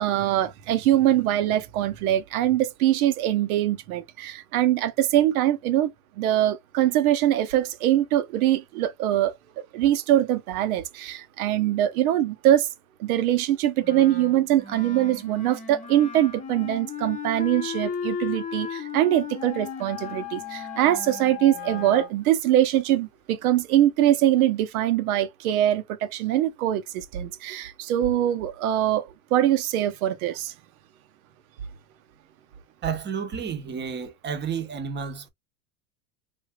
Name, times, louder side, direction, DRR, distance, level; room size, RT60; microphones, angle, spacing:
voice 1, 0.0-5.9 6.2-12.7 13.0-30.5, right 12 dB, 75° right, 0.8 m, -23 dB
Wind instrument woodwind instrument, 13.8-22.1, left 5 dB, 15° left, 0.8 m, -36 dB
sound 1, 19.4-22.1, left 18 dB, 65° left, 0.6 m, -38 dB
voice 2, 32.8-35.3, right 7 dB, 25° right, 0.9 m, -31 dB
3.4 x 2.7 x 2.3 m
hypercardioid pair, 105°, 43 cm